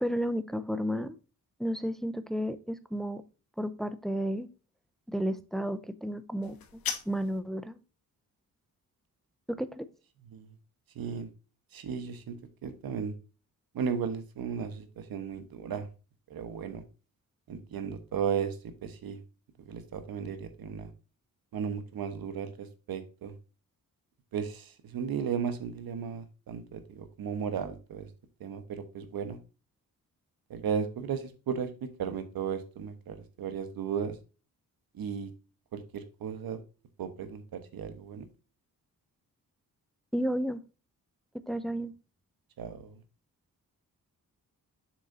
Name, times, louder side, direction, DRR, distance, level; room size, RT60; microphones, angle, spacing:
voice 1, 0.0-1.2 1.6-3.2 3.6-4.5 5.1-6.6 7.1-7.8 9.5-9.9 40.1-40.6 41.5-41.9, equal, ahead, 12 dB, 0.6 m, -32 dB
sound 1, 6.4-7.4, left 8 dB, 90° left, 1.2 m, -37 dB
voice 2, 10.2-10.5 10.9-11.3 11.7-12.4 12.6-13.1 13.7-15.9 16.3-16.8 17.5-19.2 19.6-20.9 21.5-23.3 24.3-28.1 28.4-29.4 30.5-34.2 34.9-35.3 35.7-36.6 37.0-38.3 42.6-43.0, right 7 dB, 85° right, 9 dB, 1.3 m, -35 dB
7.3 x 6.3 x 2.7 m, 0.33 s
wide cardioid pair, 115°, 35 cm